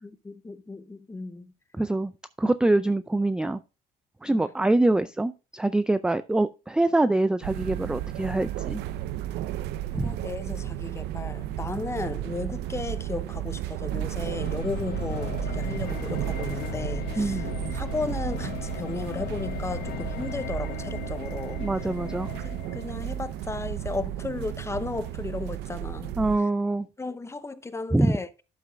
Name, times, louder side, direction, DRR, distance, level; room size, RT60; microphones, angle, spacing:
voice 1, 0.0-1.5 4.3-4.5 9.9-17.5 17.7-21.6 22.3-26.1 27.0-28.3, left 3 dB, 15° left, 0.7 m, -35 dB
voice 2, 1.7-2.1 2.4-3.6 4.2-8.8 9.9-10.1 17.2-17.4 21.6-22.3 26.2-26.9 27.9-28.2, right 2 dB, 5° right, 0.3 m, -24 dB
sound 1, 7.4-26.4, right 13 dB, 85° right, 0.5 m, -33 dB
sound 2, 14.4-23.4, left 15 dB, 65° left, 0.4 m, -38 dB
11.5 x 7.2 x 2.3 m
cardioid pair, 110°, 17 cm